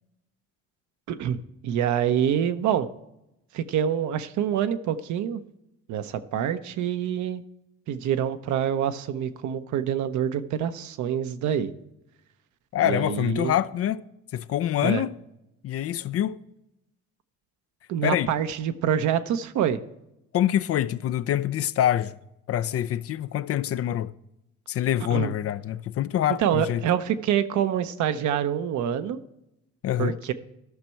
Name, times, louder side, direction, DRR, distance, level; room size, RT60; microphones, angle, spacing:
voice 1, 1.1-2.9 3.5-5.4 5.9-7.4 7.9-11.7 12.8-13.5 14.8-15.0 17.9-19.8 25.1-25.3 26.4-29.2 30.0-30.3, right 9 dB, 65° right, 0.8 m, -26 dB
voice 2, 12.7-14.0 14.3-15.1 15.6-16.4 18.0-18.3 20.3-22.1 22.5-24.1 24.7-26.8 29.8-30.2, left 11 dB, 45° left, 0.5 m, -25 dB
13.0 x 6.1 x 4.5 m
hypercardioid pair, 60°, 32 cm